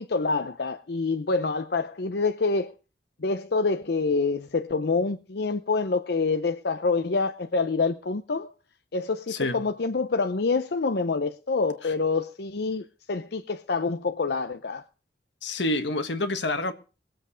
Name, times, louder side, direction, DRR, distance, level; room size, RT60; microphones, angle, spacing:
voice 1, 0.0-2.7 3.2-8.5 8.9-14.8, left 4 dB, 65° left, 0.7 m, -26 dB
voice 2, 9.3-9.6 11.8-11.9 15.4-16.7, left 2 dB, 90° left, 1.6 m, -28 dB
20.5 x 7.9 x 5.1 m
head